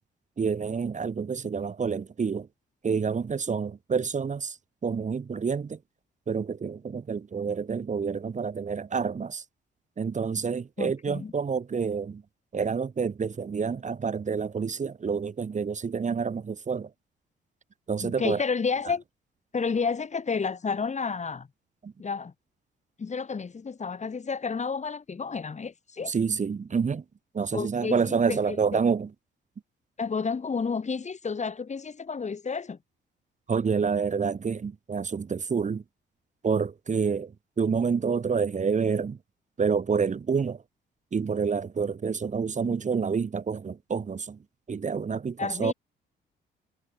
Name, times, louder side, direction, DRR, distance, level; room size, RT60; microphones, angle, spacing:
voice 1, 0.4-2.5 2.8-4.6 4.8-5.8 6.3-9.4 10.0-12.2 12.5-16.9 17.9-18.4 21.8-21.9 26.1-27.0 27.3-29.1 33.5-35.8 36.4-39.2 39.6-40.6 41.1-44.4 44.7-45.7, right 5 dB, 35° right, 2.4 m, -28 dB
voice 2, 10.8-11.3 18.0-19.0 19.5-21.5 22.0-22.3 23.0-26.1 27.5-28.6 30.0-32.8 42.6-42.8 45.4-45.7, left 5 dB, 35° left, 5.9 m, -31 dB
cardioid pair, 90°, 20 cm